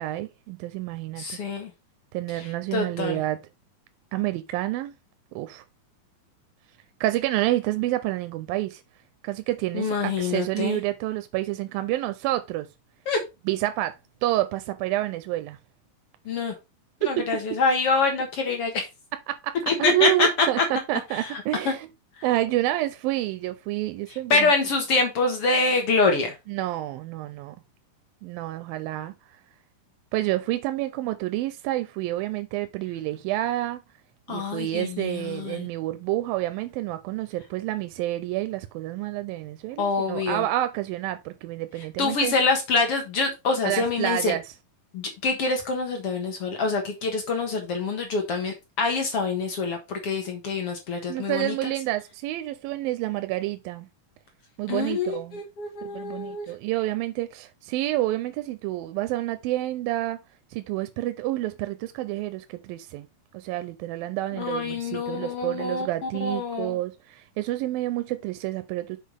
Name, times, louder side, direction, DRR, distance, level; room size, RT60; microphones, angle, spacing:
voice 1, 0.0-1.4 2.1-3.4 4.1-4.9 5.3-5.6 7.0-8.8 9.2-12.7 13.5-15.6 17.0-17.3 19.3-21.9 22.2-24.5 26.5-27.6 28.2-29.1 30.1-33.8 34.3-42.3 43.6-44.4 51.1-53.9 54.6-55.4 55.8-60.2 60.5-63.1 63.3-69.0, right 15 dB, 80° right, 2.4 m, -28 dB
voice 2, 1.2-1.7 2.3-3.2 9.7-10.8 13.1-13.2 16.3-16.5 17.0-18.9 19.7-20.7 21.1-21.7 22.2-22.3 24.3-26.3 34.3-35.7 39.8-40.4 41.8-44.3 44.9-51.7 54.7-56.5 64.3-66.8, left 4 dB, 55° left, 1.8 m, -26 dB
6.6 x 4.6 x 5.2 m
omnidirectional pair, 4.3 m